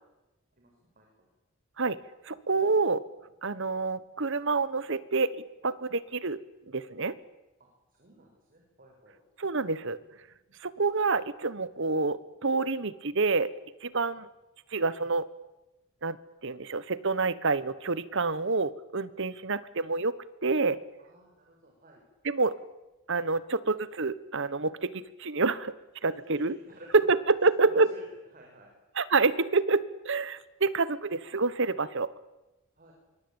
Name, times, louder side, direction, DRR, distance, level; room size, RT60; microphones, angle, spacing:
voice 1, 0.6-1.3 7.6-9.2 21.0-22.0 26.1-27.1 27.4-28.7 32.8-32.9, right 1 dB, 45° right, 0 dB, 6.5 m, -52 dB
voice 2, 2.2-3.0 3.4-6.4 6.7-7.2 9.4-10.0 10.6-13.6 13.8-14.3 14.7-15.3 16.0-16.2 16.4-20.2 20.4-20.8 22.2-22.6 23.1-25.7 26.0-26.5 26.9-27.9 29.0-32.1, right 3 dB, 65° right, 17 dB, 1.3 m, -27 dB
26.5 x 23.5 x 8.9 m, 1.0 s
head